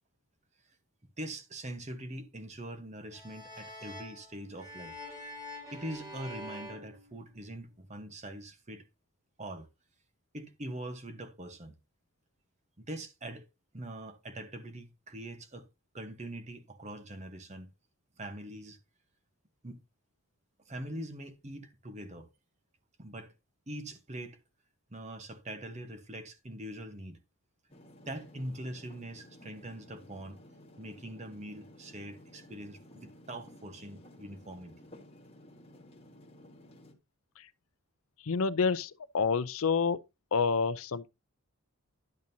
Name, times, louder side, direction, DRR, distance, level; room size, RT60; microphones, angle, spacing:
voice 1, 1.2-5.0 5.7-8.9 9.4-9.7 10.3-11.8 12.8-13.5 13.7-15.7 15.9-17.7 18.2-18.8 19.6-19.8 20.7-22.3 23.0-23.3 23.7-24.4 24.9-27.2 28.1-30.4 30.8-34.7, right 1 dB, 30° right, 1.0 m, -43 dB
sound 1, 3.1-7.7, left 1 dB, 15° right, 5.5 m, -46 dB
sound 2, 27.7-36.9, left 1 dB, 25° left, 1.4 m, -55 dB
voice 2, 38.2-40.0 40.3-41.1, left 5 dB, 70° left, 0.5 m, -28 dB
11.0 x 7.3 x 2.7 m
head